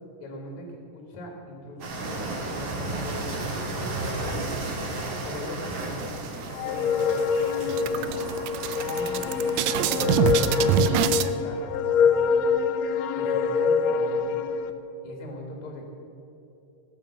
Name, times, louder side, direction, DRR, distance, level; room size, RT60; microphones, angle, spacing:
voice 1, 0.2-4.6 5.2-8.3 8.8-9.5 9.9-12.5 13.1-14.3 15.0-15.9, left 1 dB, 60° left, 1 dB, 2.8 m, -41 dB
sound 1, 1.8-10.7, right 2 dB, 60° right, 3.0 m, -34 dB
sound 2, 6.0-6.7 7.1-7.2 7.5-11.3, right 10 dB, 85° right, 1.6 m, -26 dB
sound 3, 6.6-14.7, left 6 dB, 85° left, 1.5 m, -25 dB
18.0 x 7.0 x 7.0 m, 2.8 s
omnidirectional pair, 3.9 m